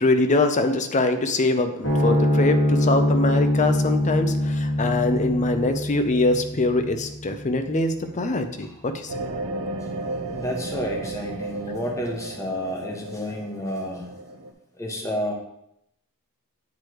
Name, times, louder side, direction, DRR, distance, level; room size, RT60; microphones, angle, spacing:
voice 1, 0.0-9.1, left 2 dB, 35° left, 7 dB, 0.6 m, -23 dB
sound 1, 1.8-8.5, left 1 dB, 70° left, 2.7 m, -24 dB
sound 2, 9.1-14.5, right 2 dB, 85° right, 0.7 m, -33 dB
voice 2, 10.3-14.1 14.8-15.3, equal, 15° left, 0 dB, 1.1 m, -30 dB
8.2 x 3.3 x 4.5 m, 0.77 s
head